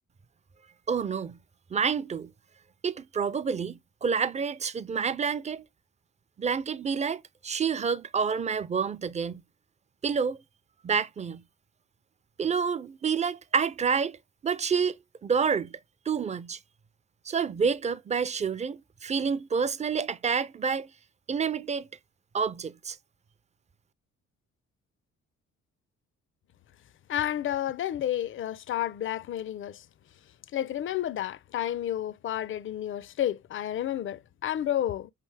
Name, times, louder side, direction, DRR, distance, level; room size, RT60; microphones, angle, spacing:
voice 1, 0.9-1.4 1.7-2.3 2.8-5.6 6.4-9.4 10.0-10.4 10.8-11.4 12.4-14.2 14.4-14.9 15.2-15.7 16.1-16.6 17.3-20.9 21.3-21.9 22.3-23.0, right 6 dB, 25° right, 0.4 m, -28 dB
voice 2, 27.1-29.8 30.5-35.1, left 11 dB, 45° left, 0.4 m, -31 dB
5.0 x 3.3 x 3.2 m
cardioid pair, 90°, 30 cm